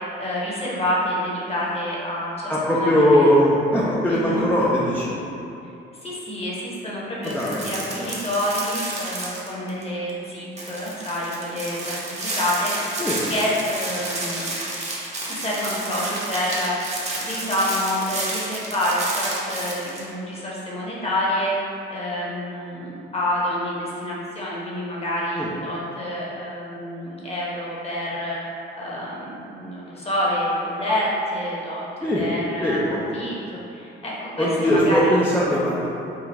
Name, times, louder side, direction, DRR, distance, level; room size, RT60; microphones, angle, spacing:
voice 1, 0.2-3.3 4.1-4.4 6.0-12.7 13.3-14.4 15.2-16.7 17.2-21.5 21.9-28.4 28.8-31.8 32.2-35.3, left 1 dB, 30° left, -6 dB, 1.1 m, -27 dB
voice 2, 2.5-5.2 7.2-7.7 8.0-8.1 13.0-13.2 25.3-25.5 32.0-32.2 32.6-33.0 34.4-35.9, equal, 10° left, -7 dB, 0.5 m, -20 dB
sound 1, 7.2-9.8 10.1-10.2 10.6-20.1, right 2 dB, 35° right, 0.8 m, -31 dB
3.9 x 2.4 x 4.2 m, 2.7 s
cardioid pair, 90°, 20 cm